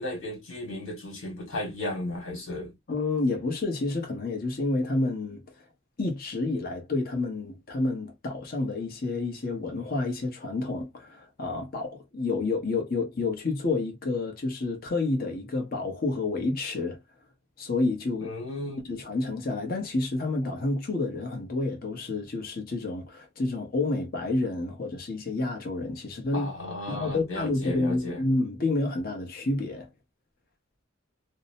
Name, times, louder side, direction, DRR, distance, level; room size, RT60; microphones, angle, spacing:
voice 1, 0.0-2.7 18.2-18.8 26.3-28.2, left 1 dB, 75° left, 1.5 m, -34 dB
voice 2, 2.9-5.4 6.0-17.0 17.6-18.3 18.8-26.5 26.9-29.9, left 2 dB, 50° left, 0.9 m, -29 dB
2.7 x 2.0 x 2.6 m
head